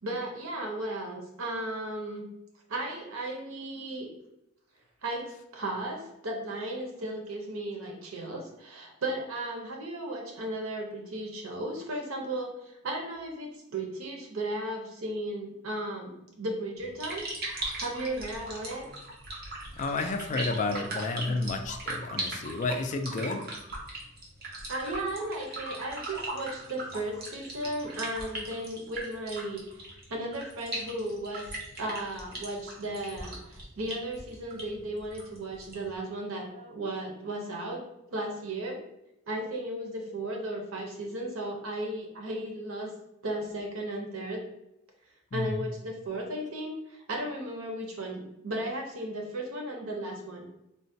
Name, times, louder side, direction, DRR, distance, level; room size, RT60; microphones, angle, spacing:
voice 1, 0.0-2.3 2.7-4.1 5.0-17.2 17.8-18.9 21.2-21.4 24.7-31.4 31.8-38.8 39.3-42.9 43.2-44.4 45.3-50.4, right 1 dB, 80° right, 1 dB, 0.7 m, -35 dB
sound 1, 16.8-35.9, right 2 dB, 50° right, 0.7 m, -39 dB
voice 2, 19.8-23.4 45.3-45.6, left 3 dB, 35° left, 6 dB, 0.3 m, -31 dB
3.8 x 2.1 x 2.7 m, 0.85 s
head